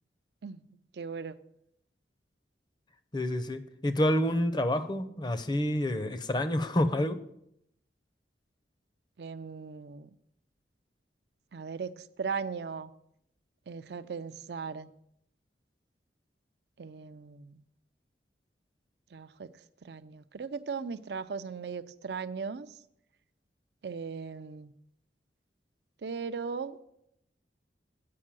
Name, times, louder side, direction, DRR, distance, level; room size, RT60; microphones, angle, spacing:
voice 1, 0.9-1.3 9.2-10.1 11.5-12.9 13.7-14.9 16.8-17.5 19.1-19.5 19.8-22.7 23.8-24.7 26.0-26.8, right 5 dB, 65° right, 12 dB, 0.5 m, -38 dB
voice 2, 3.1-7.2, left 1 dB, 25° left, 9 dB, 0.6 m, -28 dB
8.5 x 5.4 x 7.4 m, 0.77 s
head